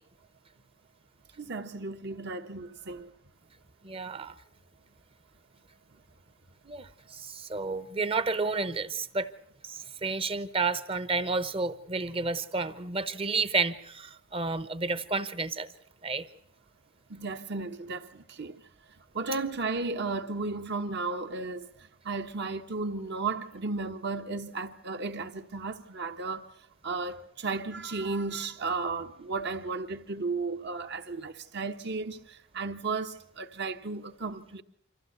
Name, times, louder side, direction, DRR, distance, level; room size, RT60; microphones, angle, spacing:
voice 1, 1.4-3.1 17.1-18.6 19.1-26.5 26.8-34.6, right 3 dB, 55° right, 1.3 m, -34 dB
voice 2, 3.8-4.3 6.6-9.3 9.6-15.7 16.0-16.3, right 4 dB, 30° right, 0.9 m, -31 dB
25.0 x 15.0 x 8.0 m
head